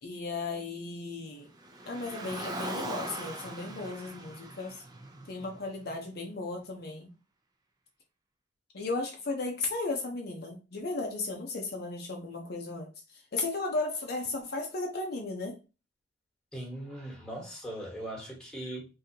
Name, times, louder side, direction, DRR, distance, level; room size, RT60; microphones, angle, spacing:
voice 1, 0.0-1.5 1.8-4.8 5.3-7.1 8.7-15.6, left 3 dB, 55° left, 0.6 m, -35 dB
Car, 1.6-6.0, right 2 dB, 20° right, 0.5 m, -40 dB
voice 2, 16.5-18.9, right 1 dB, 5° left, 1.2 m, -39 dB
3.6 x 2.7 x 2.7 m
head